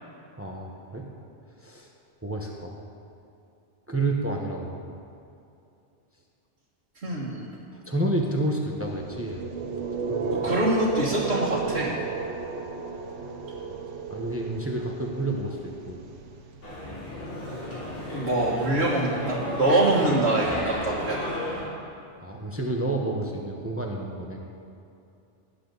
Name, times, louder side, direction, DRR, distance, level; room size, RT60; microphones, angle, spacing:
voice 1, 0.4-1.1 1.6-1.9 2.2-2.8 3.9-4.7 7.8-9.4 10.1-10.6 14.1-15.6 15.9-16.0 22.2-24.4, right 2 dB, 10° right, 0 dB, 1.1 m, -29 dB
voice 2, 7.0-7.5 10.3-12.0 18.1-21.2, right 2 dB, 65° right, -7 dB, 2.0 m, -24 dB
sound 1, 8.8-16.9, right 4 dB, 85° right, 1.2 m, -33 dB
sound 2, 16.6-21.6, left 1 dB, 75° left, 3.7 m, -33 dB
18.5 x 9.9 x 4.1 m, 2.6 s
omnidirectional pair, 1.2 m